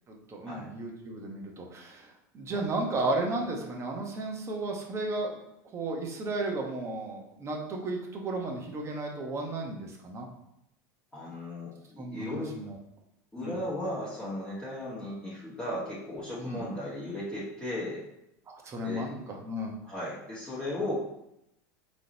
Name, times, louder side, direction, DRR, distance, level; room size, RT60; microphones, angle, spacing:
voice 1, 0.1-2.1 2.3-5.4 5.7-10.3 12.0-12.8 13.4-13.6 16.4-16.6 18.5-19.7, right 2 dB, 30° right, 1 dB, 1.0 m, -34 dB
voice 2, 11.1-12.5 13.3-18.0 18.8-19.0 19.8-20.9, left 1 dB, 10° left, -10 dB, 1.5 m, -36 dB
3.7 x 3.1 x 4.0 m, 0.81 s
hypercardioid pair, 100°, 9 cm